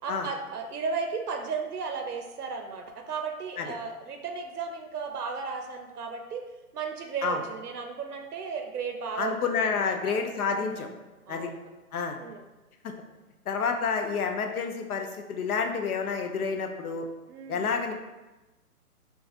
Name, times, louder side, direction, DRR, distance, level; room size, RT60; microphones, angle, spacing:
voice 1, 0.0-6.4 6.7-10.2 10.5-11.0 11.3-11.7 12.2-12.4 17.3-17.8, right 5 dB, 80° right, 4 dB, 0.6 m, -35 dB
voice 2, 9.2-10.9 11.3-11.5 11.9-12.2 12.8-12.9 13.5-17.1 17.5-17.9, left 5 dB, 70° left, 4 dB, 0.6 m, -29 dB
3.9 x 2.4 x 2.5 m, 1.1 s
hypercardioid pair, 155°, 45 cm